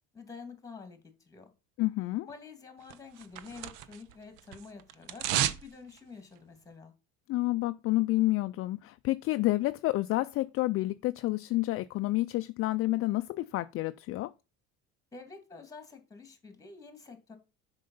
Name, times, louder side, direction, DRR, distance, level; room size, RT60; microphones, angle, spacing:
voice 1, 0.1-1.5 2.3-6.9 15.1-17.4, left 4 dB, 10° left, 2.1 m, -48 dB
voice 2, 1.8-2.3 7.3-14.3, left 18 dB, 45° left, 0.4 m, -29 dB
sound 1, 2.9-4.1 4.4-5.7 6.0-6.1, right 11 dB, 80° right, 0.8 m, -32 dB
7.6 x 5.3 x 5.4 m
cardioid pair, 135°, 31 cm